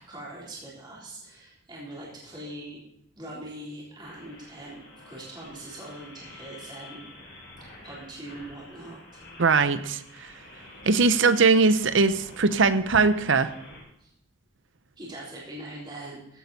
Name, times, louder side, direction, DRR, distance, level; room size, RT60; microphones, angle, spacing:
voice 1, 0.0-2.8 3.2-7.1 7.6-9.0 14.0-14.1 15.0-16.4, right 1 dB, 20° right, -6 dB, 3.5 m, -42 dB
sound 1, 4.0-13.8, left 2 dB, 65° left, 6.0 m, -48 dB
voice 2, 9.4-10.3 10.8-13.5, right 4 dB, 65° right, 12 dB, 0.7 m, -21 dB
15.5 x 8.8 x 4.1 m, 0.72 s
head